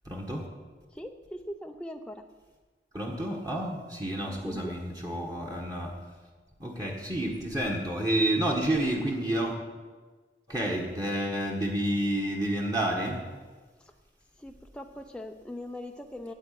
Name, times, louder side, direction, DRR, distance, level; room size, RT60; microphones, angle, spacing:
voice 1, 0.0-0.4 2.9-6.0 6.6-9.6 10.5-13.2, right 1 dB, 20° right, -1 dB, 1.4 m, -29 dB
voice 2, 0.9-2.3 4.2-4.7 13.8-13.9 14.4-16.3, left 1 dB, 5° left, 4 dB, 0.5 m, -41 dB
9.0 x 8.0 x 9.3 m, 1.4 s
head